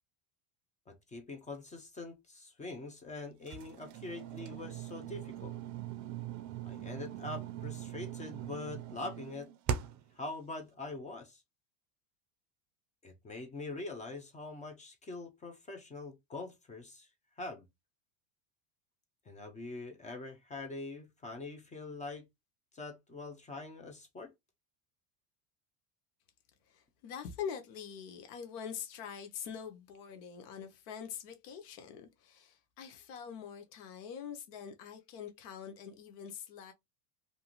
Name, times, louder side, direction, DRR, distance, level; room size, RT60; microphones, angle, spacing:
voice 1, 0.9-5.5 6.6-9.5 10.2-11.4 13.0-17.1 17.4-17.7 19.3-22.3 22.7-24.3, left 2 dB, 20° left, 0.4 m, -44 dB
sound 1, 3.5-10.1, right 9 dB, 40° right, 0.4 m, -41 dB
voice 2, 26.7-36.7, left 7 dB, 80° left, 0.8 m, -44 dB
2.5 x 2.3 x 2.8 m
supercardioid pair, 120°, 45 cm